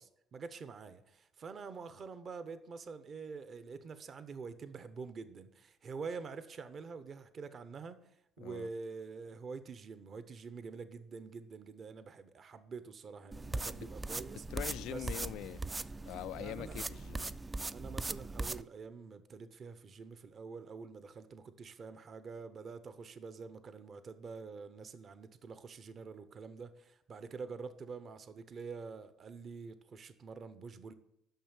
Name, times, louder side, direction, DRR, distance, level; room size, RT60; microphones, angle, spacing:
voice 1, 0.0-14.4 14.9-15.1 16.4-16.8 17.7-30.9, right 5 dB, 45° right, 0.8 m, -46 dB
voice 2, 8.4-8.7 14.5-15.6 16.1-17.3, left 14 dB, 75° left, 0.3 m, -43 dB
sound 1, 13.3-18.6, right 2 dB, 20° right, 0.4 m, -40 dB
9.3 x 6.4 x 8.7 m
cardioid pair, 105°, 0 cm